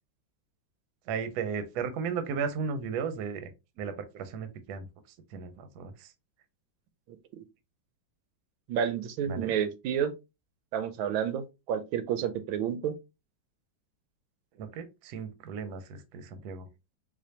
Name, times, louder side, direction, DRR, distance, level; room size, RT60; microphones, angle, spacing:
voice 1, 1.1-3.5 3.8-4.9 5.3-6.1 9.3-9.5 14.6-16.7, right 6 dB, 65° right, 1.0 m, -35 dB
voice 2, 7.1-7.4 8.7-10.1 10.7-12.9, right 8 dB, 85° right, 1.4 m, -30 dB
4.2 x 2.5 x 2.7 m
omnidirectional pair, 2.1 m